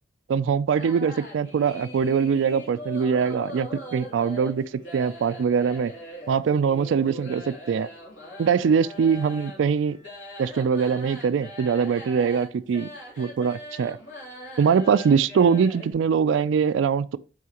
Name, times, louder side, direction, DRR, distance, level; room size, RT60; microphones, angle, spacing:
voice 1, 0.3-5.9 6.3-7.9 8.4-10.0 10.4-12.9 13.2-14.0 14.6-17.2, right 6 dB, 80° right, 0.3 m, -22 dB
sound 1, 0.7-15.9, equal, 80° left, 2.9 m, -41 dB
8.3 x 4.2 x 2.9 m
head